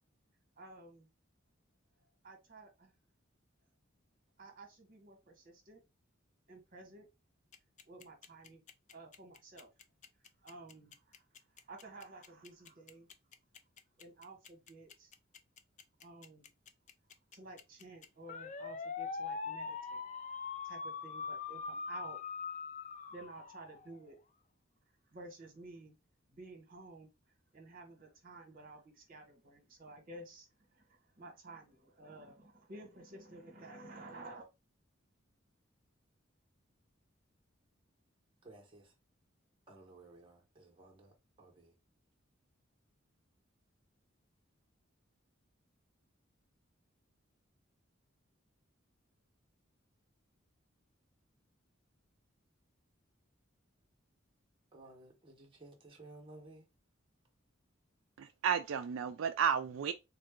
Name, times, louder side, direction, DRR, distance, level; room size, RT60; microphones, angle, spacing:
voice 1, 0.6-1.1 2.2-2.9 4.4-5.8 6.5-7.1 7.9-8.6 8.9-9.7 10.4-11.1 11.7-13.1 14.0-15.1 16.0-16.5 17.3-20.1 20.6-22.2 23.1-24.2 25.1-25.9 26.3-27.1 27.5-34.5, right 2 dB, 45° right, 1.4 m, -52 dB
sound 1, 7.5-24.0, left 5 dB, 40° left, 0.4 m, -42 dB
voice 2, 38.4-38.9 39.7-41.7 54.7-56.6, right 2 dB, 25° right, 1.2 m, -56 dB
voice 3, 58.2-59.9, right 7 dB, 85° right, 0.4 m, -32 dB
3.7 x 2.6 x 3.6 m
head